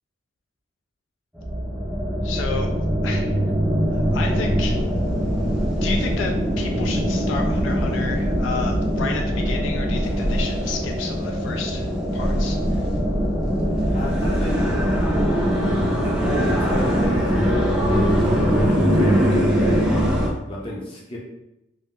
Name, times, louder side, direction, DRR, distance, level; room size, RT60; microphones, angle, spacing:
sound 1, 1.3-20.3, equal, 5° right, 0.4 m, -22 dB
voice 1, 2.2-2.7 3.0-3.3 3.9-4.8 5.8-11.9 12.1-12.9, left 4 dB, 80° left, 3 dB, 0.3 m, -31 dB
voice 2, 13.9-14.7 16.0-20.1 20.4-21.2, equal, 30° left, -3 dB, 0.7 m, -31 dB
2.4 x 2.0 x 3.6 m, 0.89 s
head